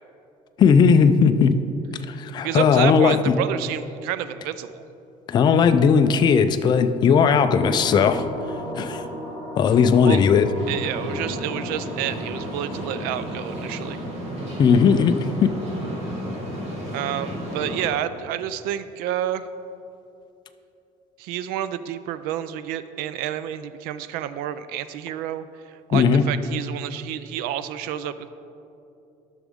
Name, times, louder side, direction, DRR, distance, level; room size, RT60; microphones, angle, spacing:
voice 1, 0.6-1.5 2.1-3.3 5.3-8.3 8.8-9.0 9.6-10.5 14.6-15.5 25.9-26.2, left 6 dB, 30° left, 9 dB, 0.4 m, -17 dB
voice 2, 2.4-4.8 10.0-10.2 10.7-14.0 16.9-19.5 21.2-28.3, right 11 dB, 85° right, 13 dB, 0.4 m, -29 dB
sound 1, 7.5-14.1, right 1 dB, 15° right, 1.3 m, -36 dB
sound 2, 10.5-17.9, equal, 45° right, 2.1 m, -33 dB
12.0 x 6.2 x 3.6 m, 2.8 s
cardioid pair, 155°, 15 cm